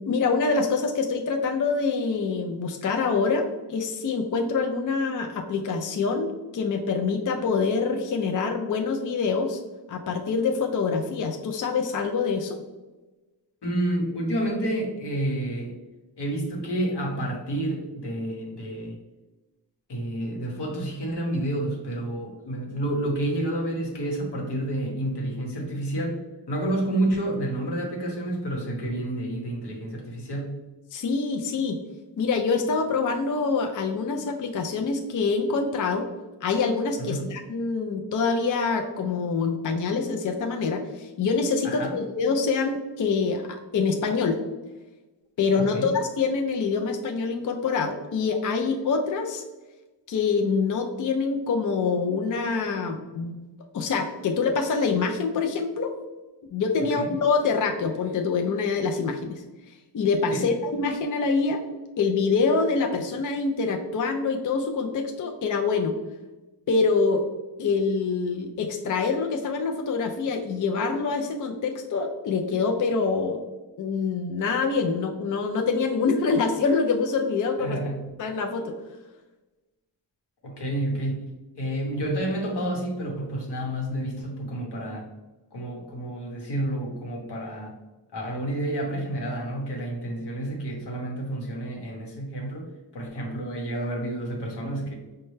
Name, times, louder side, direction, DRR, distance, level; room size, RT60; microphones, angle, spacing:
voice 1, 0.0-9.6 9.9-12.6 30.9-31.8 32.2-36.1 36.4-44.4 45.4-49.4 50.1-53.3 53.7-55.9 56.5-59.4 59.9-61.6 62.0-66.0 66.7-67.3 67.6-73.4 73.8-77.8 78.2-78.7, left 4 dB, 50° left, 4 dB, 0.4 m, -25 dB
voice 2, 13.6-15.8 16.2-19.0 19.9-30.6 37.0-37.3 41.6-42.0 45.5-45.9 56.9-57.1 60.3-60.5 77.6-78.1 80.4-85.1 85.5-87.7 88.1-94.9, right 1 dB, 70° left, 0 dB, 1.0 m, -29 dB
5.2 x 2.2 x 3.1 m, 1.1 s
wide cardioid pair, 95°, 42 cm